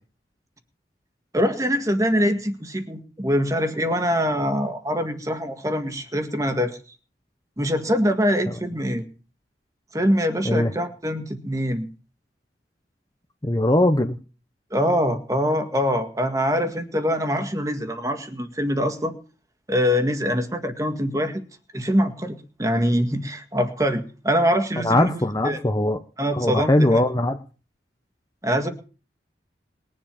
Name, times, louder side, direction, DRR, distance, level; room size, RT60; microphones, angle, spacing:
voice 1, 1.3-6.8 7.6-9.0 9.9-11.9 14.7-19.1 19.7-21.4 21.7-25.6 26.2-27.0 28.4-28.7, equal, 20° right, 7 dB, 1.8 m, -24 dB
voice 2, 13.4-14.2 24.8-26.0 26.3-27.4, left 1 dB, 20° left, 7 dB, 0.9 m, -20 dB
21.0 x 7.7 x 7.1 m, 0.38 s
head